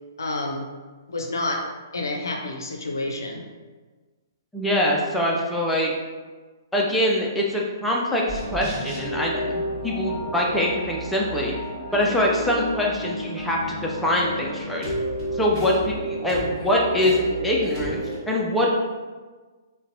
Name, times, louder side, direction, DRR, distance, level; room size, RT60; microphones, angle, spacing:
voice 1, 0.2-0.7 1.1-1.7 1.9-3.4, left 2 dB, 65° left, 2 dB, 0.5 m, -29 dB
voice 2, 4.5-5.9 6.7-11.5 11.9-14.9 15.4-18.7, left 1 dB, 5° left, -3 dB, 0.3 m, -24 dB
sound 1, 8.3-18.2, right 1 dB, 20° right, 1.0 m, -32 dB
3.8 x 2.1 x 2.5 m, 1.3 s
figure-of-eight pair, 120°, 2 cm